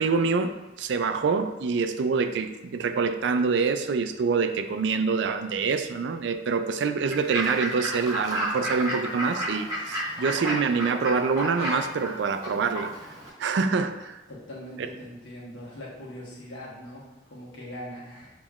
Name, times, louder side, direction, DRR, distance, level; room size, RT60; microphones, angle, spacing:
voice 1, 0.0-12.9 13.4-14.2, right 5 dB, 75° right, 9 dB, 0.3 m, -26 dB
Fowl / Bird, 7.1-13.3, right 1 dB, 20° right, 1.3 m, -32 dB
voice 2, 14.3-18.3, equal, 80° left, -5 dB, 1.3 m, -41 dB
7.0 x 3.0 x 2.4 m, 1.1 s
head